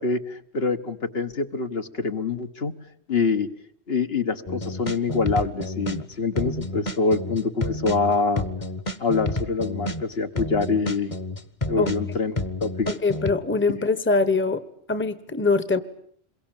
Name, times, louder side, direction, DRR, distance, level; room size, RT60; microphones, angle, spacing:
voice 1, 0.0-2.7 3.1-3.5 3.9-8.5 9.0-11.1 11.7-12.9, left 4 dB, 65° left, 6 dB, 1.7 m, -25 dB
sound 1, 4.5-6.0 6.3-13.3, left 1 dB, 30° left, 1.3 m, -30 dB
voice 2, 12.9-14.6 14.9-15.8, left 3 dB, 10° left, 14 dB, 1.1 m, -23 dB
27.0 x 22.5 x 9.1 m, 0.62 s
omnidirectional pair, 1.1 m